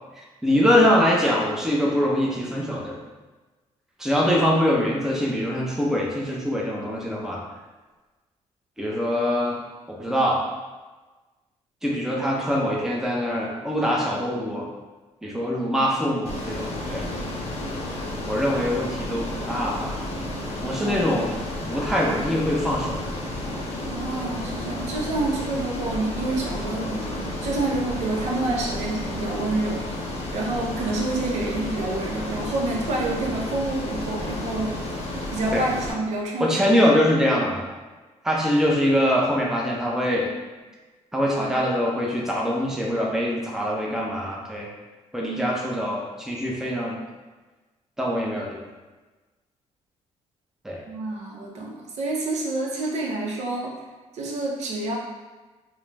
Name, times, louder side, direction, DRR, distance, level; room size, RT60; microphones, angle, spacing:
voice 1, 0.4-3.0 4.0-7.4 8.8-9.6 9.9-10.4 11.8-14.7 15.2-17.1 18.2-20.0 20.6-21.3 21.7-23.1 35.5-35.7 36.4-37.7 38.2-40.3 41.1-44.7 45.1-47.0 48.0-48.6 50.6-50.8, equal, 5° right, -3 dB, 0.5 m, -23 dB
Ocean, 16.3-35.9, left 1 dB, 60° left, 0.6 m, -31 dB
voice 2, 23.9-29.8 30.3-34.8 35.3-36.7 50.9-53.7 54.1-55.0, right 2 dB, 70° right, -2 dB, 0.6 m, -28 dB
2.3 x 2.0 x 3.2 m, 1.2 s
cardioid pair, 90°, 12 cm